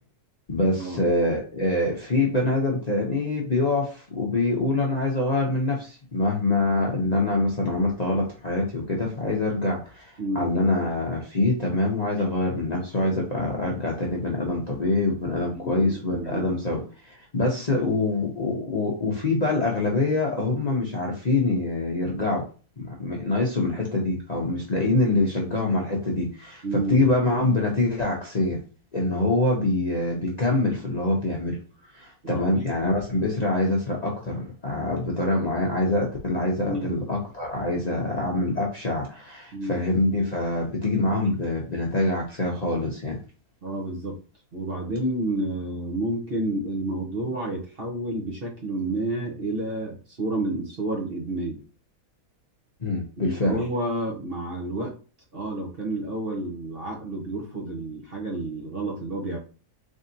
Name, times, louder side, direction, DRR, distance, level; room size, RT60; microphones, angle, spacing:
voice 1, 0.5-22.5 22.8-28.6 28.9-31.6 31.9-43.2 52.8-53.6, left 2 dB, 35° left, -2 dB, 0.7 m, -25 dB
voice 2, 10.2-10.5 15.5-16.4 26.6-27.1 32.2-32.6 36.7-37.0 39.5-39.8 43.6-44.2 44.5-51.6 53.2-54.9 55.3-59.4, right 1 dB, 45° right, -1 dB, 1.0 m, -30 dB
3.9 x 3.7 x 2.7 m, 0.36 s
omnidirectional pair, 1.6 m